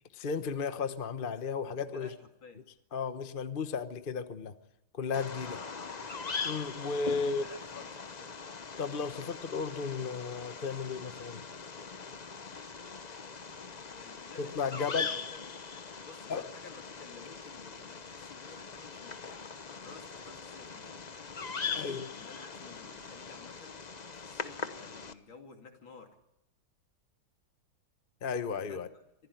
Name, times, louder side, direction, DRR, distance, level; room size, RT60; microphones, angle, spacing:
voice 1, 0.2-2.1 2.9-4.5 4.9-5.6 6.4-7.5 8.8-11.4 14.4-15.1 16.3-16.5 21.7-22.1 28.2-28.9, left 5 dB, 35° left, 10 dB, 0.9 m, -34 dB
voice 2, 1.7-2.6 5.4-5.9 7.1-8.4 13.8-15.6 16.0-19.5 19.8-21.0 21.6-23.8 24.2-26.1 28.7-28.8, left 4 dB, 65° left, 3 dB, 3.5 m, -53 dB
Bird vocalization bird call bird song, 5.1-25.1, left 5 dB, 85° left, 0.3 m, -41 dB
25.5 x 16.0 x 9.3 m, 0.84 s
omnidirectional pair, 2.3 m